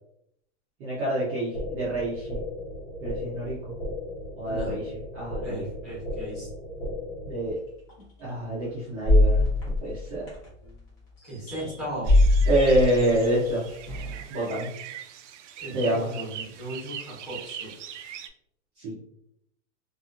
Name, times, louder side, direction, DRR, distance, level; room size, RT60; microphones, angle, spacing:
voice 1, 0.8-2.4 3.0-3.8 4.4-5.6 7.2-7.6 8.2-9.5 9.8-10.2 12.5-13.7 14.3-14.7 15.7-16.2 18.8-19.0, right 1 dB, 20° right, -9 dB, 0.6 m, -26 dB
sound 1, 1.5-7.5, left 1 dB, 80° left, 1.2 m, -36 dB
voice 2, 4.4-4.8 5.4-6.5 11.2-12.1 15.6-17.7, right 1 dB, ahead, -9 dB, 1.1 m, -37 dB
sound 2, 7.9-8.0 9.0-10.7 11.5-11.8 12.1-14.2, left 2 dB, 30° left, 1.1 m, -22 dB
sound 3, 12.0-18.3, right 9 dB, 80° right, 0.5 m, -41 dB
2.8 x 2.6 x 2.4 m, 0.76 s
supercardioid pair, 175°, 36 cm